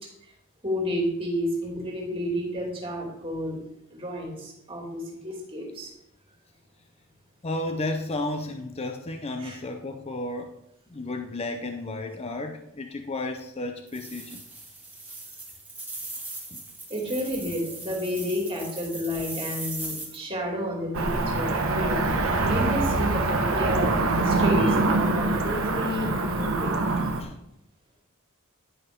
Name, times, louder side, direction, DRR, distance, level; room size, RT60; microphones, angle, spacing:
voice 1, 0.6-3.6 3.9-5.9 9.4-9.6 16.9-23.9 24.2-26.7, left 1 dB, 25° right, 2.7 m, -31 dB
voice 2, 7.4-10.5 10.9-14.4 16.5-16.6 27.2-27.3, left 2 dB, 30° left, 0.6 m, -33 dB
sound 1, 13.9-20.2, right 2 dB, 5° right, 1.8 m, -39 dB
Cricket / Motor vehicle (road), 20.9-27.2, right 2 dB, 65° right, 1.1 m, -24 dB
10.5 x 6.1 x 5.2 m
head